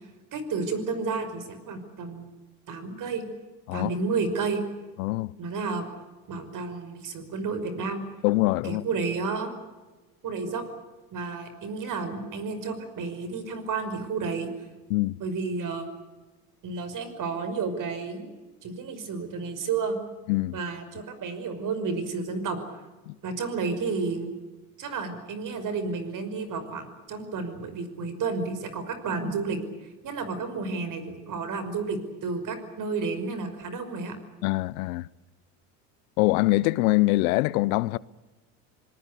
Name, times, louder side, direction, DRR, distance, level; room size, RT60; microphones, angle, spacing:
voice 1, 0.3-2.3 2.7-3.2 3.7-4.6 5.4-5.9 6.3-8.0 8.6-9.6 10.2-10.6 11.1-14.5 15.2-15.9 16.6-18.3 18.6-20.0 20.5-22.6 23.2-24.3 24.8-29.6 30.0-34.2, right 4 dB, 45° right, 5.7 m, -31 dB
voice 2, 5.0-5.4 8.2-8.8 14.9-15.1 20.3-20.6 23.1-23.2 34.4-35.1 36.2-38.0, left 20 dB, 85° left, 0.8 m, -24 dB
26.5 x 19.5 x 8.3 m
supercardioid pair, 90°, 42 cm